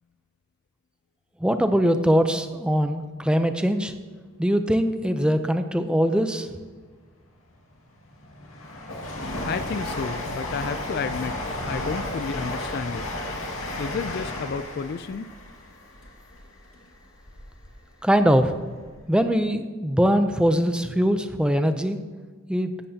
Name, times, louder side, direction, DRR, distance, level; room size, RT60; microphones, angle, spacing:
voice 1, 1.4-3.9 4.4-6.5 18.0-18.5 19.1-22.0 22.5-22.7, equal, 5° right, 8 dB, 0.5 m, -22 dB
Train, 7.5-17.7 18.1-19.0 19.3-19.4, left 1 dB, 80° left, 2.0 m, -33 dB
voice 2, 9.5-11.4 11.7-13.1 13.8-15.3, left 5 dB, 50° left, 13 dB, 0.3 m, -31 dB
16.0 x 11.5 x 2.8 m, 1.5 s
head